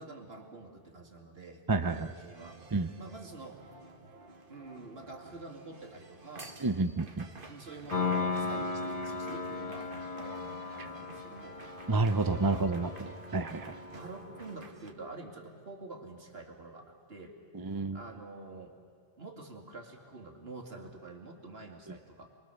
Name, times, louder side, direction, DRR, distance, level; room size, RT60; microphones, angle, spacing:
voice 1, 0.0-2.6 3.0-3.6 4.5-6.6 7.5-9.9 10.1-11.6 12.3-12.7 13.9-17.4 17.9-18.8 19.2-22.3, right 2 dB, 75° right, 1 dB, 2.7 m, -47 dB
voice 2, 1.7-2.1 2.7-2.9 6.6-7.3 10.8-10.9 11.9-12.9 13.3-13.8 17.5-18.0 21.9-22.0, right 3 dB, 25° right, 9 dB, 0.6 m, -29 dB
sound 1, 1.8-14.9, right 3 dB, 60° right, 1.7 m, -52 dB
Piano, 7.9-14.6, left 4 dB, 40° left, 1.3 m, -37 dB
28.5 x 22.0 x 6.9 m, 2.1 s
omnidirectional pair, 1.0 m